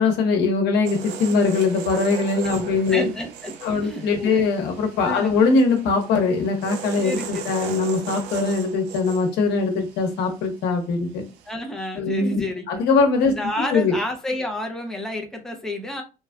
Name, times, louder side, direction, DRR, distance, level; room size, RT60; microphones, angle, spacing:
voice 1, 0.0-3.1 3.6-11.2 11.9-13.3 13.7-14.0, left 4 dB, 80° left, 0.9 m, -21 dB
sound 1, 0.9-10.9 11.2-11.5, right 8 dB, 90° right, 0.5 m, -38 dB
voice 2, 2.9-4.4 5.0-5.4 7.0-7.5 11.5-12.8 13.2-16.0, left 1 dB, 5° left, 0.6 m, -30 dB
3.2 x 2.3 x 2.2 m
cardioid pair, 110°, 17 cm